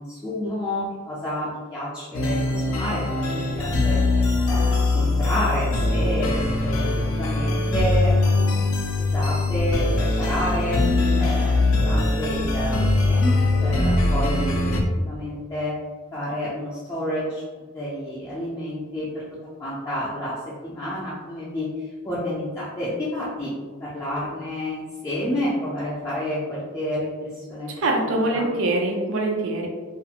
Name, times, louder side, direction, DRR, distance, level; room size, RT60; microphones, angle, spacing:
voice 1, 0.0-6.3 6.6-10.8 11.2-14.5 15.1-15.7 16.1-17.4 17.7-19.2 19.6-21.7 22.0-23.5 23.8-27.8 28.3-28.5, equal, 15° left, -10 dB, 0.4 m, -29 dB
sound 1, 2.1-14.8, left 2 dB, 85° left, 0.5 m, -22 dB
voice 2, 27.8-29.7, right 2 dB, 70° right, 1 dB, 0.5 m, -23 dB
2.4 x 2.4 x 2.8 m, 1.4 s
head